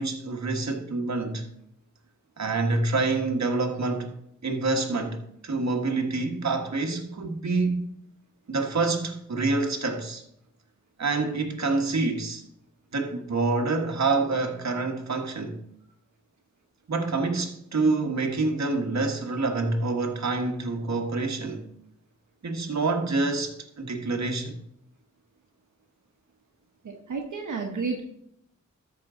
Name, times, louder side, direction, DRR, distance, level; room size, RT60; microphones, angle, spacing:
voice 1, 0.0-1.5 2.4-4.1 4.4-7.9 8.5-10.2 11.0-12.4 12.9-15.6 16.9-21.6 22.4-24.6, right 3 dB, 65° right, 1.5 m, -27 dB
voice 2, 26.8-28.0, right 4 dB, 80° right, 1.2 m, -31 dB
13.0 x 6.1 x 3.8 m
wide cardioid pair, 70°, 30 cm